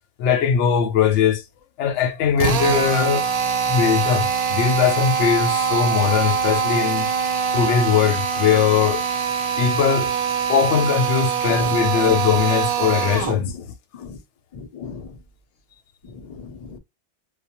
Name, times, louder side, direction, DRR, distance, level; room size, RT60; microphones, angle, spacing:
voice 1, 0.2-1.4 1.8-3.3 3.7-7.1 7.5-9.0 9.6-10.1 10.5-13.5, left 7 dB, 75° left, 0.9 m, -20 dB
Drill, 2.4-13.4, right 6 dB, 75° right, 0.3 m, -23 dB
voice 2, 11.4-11.8 13.2-13.5 13.9-14.2 14.5-15.1 16.0-16.8, left 6 dB, 55° left, 0.4 m, -36 dB
2.3 x 2.2 x 2.8 m
omnidirectional pair, 1.2 m